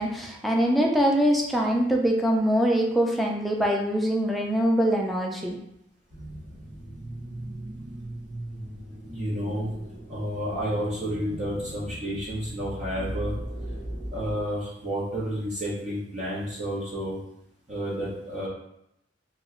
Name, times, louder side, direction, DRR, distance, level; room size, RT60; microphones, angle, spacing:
voice 1, 0.0-5.6, equal, ahead, -1 dB, 0.3 m, -23 dB
sound 1, 6.1-14.4, right 1 dB, 85° right, 1.1 m, -38 dB
voice 2, 9.0-9.7 10.1-13.3 14.1-17.2 17.7-18.5, equal, 40° right, -7 dB, 0.6 m, -30 dB
2.9 x 2.1 x 3.5 m, 0.79 s
head